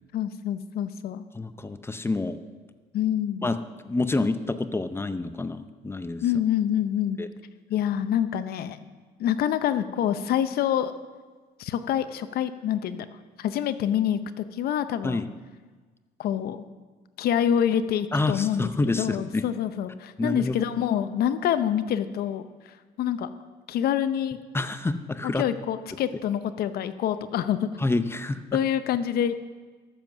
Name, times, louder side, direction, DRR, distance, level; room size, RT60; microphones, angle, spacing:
voice 1, 0.1-1.2 2.9-3.5 6.2-7.2 7.7-8.8 9.2-10.9 11.6-13.1 13.4-15.2 16.2-16.6 17.2-18.7 19.0-22.4 23.0-23.3 23.7-24.4 25.4-27.7 28.5-29.3, left 10 dB, 65° left, 12 dB, 0.7 m, -26 dB
voice 2, 1.3-2.4 3.4-3.6 3.8-6.2 7.2-7.3 15.0-15.3 18.1-19.4 20.2-20.6 24.5-25.4 27.8-28.6, left 2 dB, 15° left, 11 dB, 0.6 m, -27 dB
13.5 x 7.2 x 6.1 m, 1.4 s
cardioid pair, 110°, 17 cm